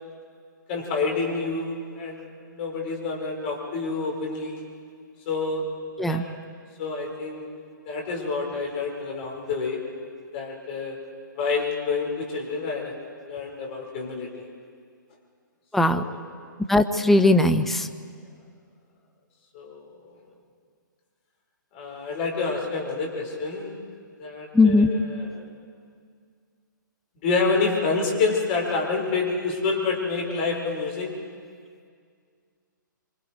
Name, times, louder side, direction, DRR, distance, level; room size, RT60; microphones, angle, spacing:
voice 1, 0.7-4.6 5.3-5.6 6.1-6.4 6.8-7.5 7.9-9.8 10.3-11.0 11.4-12.9 13.3-14.5 15.9-16.2 17.0-17.1 19.5-19.9 21.7-23.8 24.2-25.4 27.2-31.1, left 4 dB, 35° left, -1 dB, 5.4 m, -28 dB
voice 2, 16.7-17.9 24.5-24.9, left 2 dB, ahead, 7 dB, 0.7 m, -19 dB
26.5 x 26.0 x 4.7 m, 2.1 s
figure-of-eight pair, 125°, 11 cm